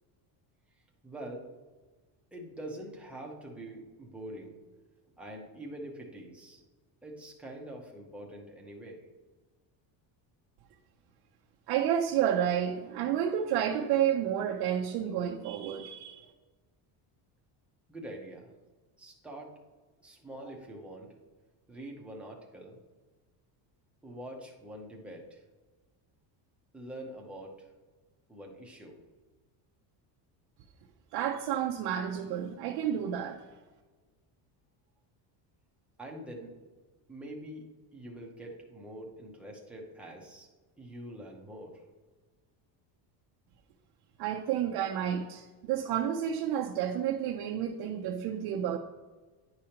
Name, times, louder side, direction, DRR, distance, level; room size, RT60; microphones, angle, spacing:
voice 1, 1.0-1.5 2.3-4.5 5.2-6.6 7.0-9.1 17.9-18.5 19.0-19.5 20.0-21.1 21.7-22.8 24.0-25.4 26.7-27.7 28.3-29.0 36.0-36.5 37.1-37.7 37.9-40.5 40.8-41.7, right 1 dB, 5° right, -2 dB, 0.6 m, -44 dB
voice 2, 11.7-16.3 31.1-33.4 44.2-48.8, right 9 dB, 55° right, -1 dB, 0.6 m, -30 dB
10.5 x 4.9 x 2.9 m, 1.3 s
cardioid pair, 180°, 47 cm